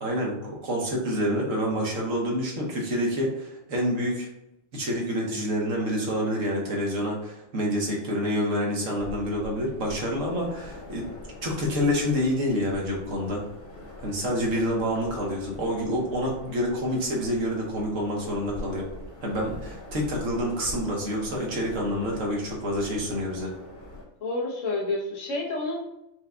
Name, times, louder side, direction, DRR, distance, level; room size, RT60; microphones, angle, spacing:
voice 1, 0.0-4.3 4.7-11.0 11.4-13.4 14.0-18.9 19.2-23.5, equal, 75° right, -2 dB, 1.4 m, -27 dB
sound 1, 8.9-24.0, left 1 dB, 55° left, 1.5 m, -43 dB
voice 2, 24.2-25.8, left 2 dB, 75° left, -2 dB, 1.3 m, -29 dB
4.6 x 2.3 x 3.7 m, 0.90 s
omnidirectional pair, 1.3 m